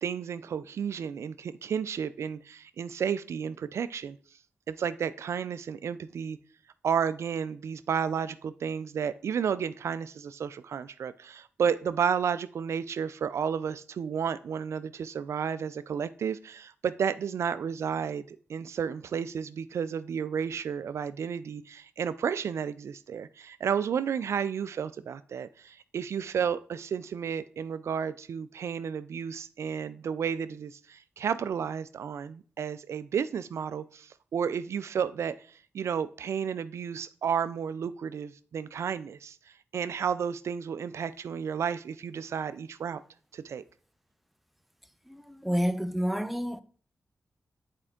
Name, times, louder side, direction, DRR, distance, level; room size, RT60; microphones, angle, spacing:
voice 1, 0.0-4.2 4.7-6.4 6.8-35.5 35.7-39.4 39.7-43.0 43.3-43.6, right 7 dB, 75° right, 0.3 m, -32 dB
voice 2, 45.1-46.6, equal, ahead, 0.6 m, -29 dB
7.6 x 4.4 x 3.7 m
supercardioid pair, 40°, 5 cm